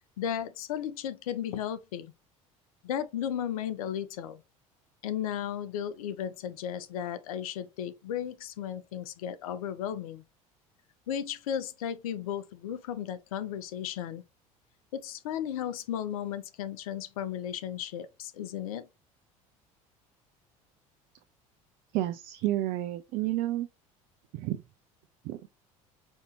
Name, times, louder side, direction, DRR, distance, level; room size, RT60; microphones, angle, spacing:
voice 1, 0.2-2.1 2.8-4.4 5.0-10.2 11.1-14.2 14.9-18.9, left 9 dB, 75° left, 0.6 m, -35 dB
voice 2, 21.9-23.7 24.3-24.6 25.2-25.4, right 15 dB, 55° right, 0.5 m, -30 dB
5.3 x 2.9 x 2.9 m
hypercardioid pair, 70°, 18 cm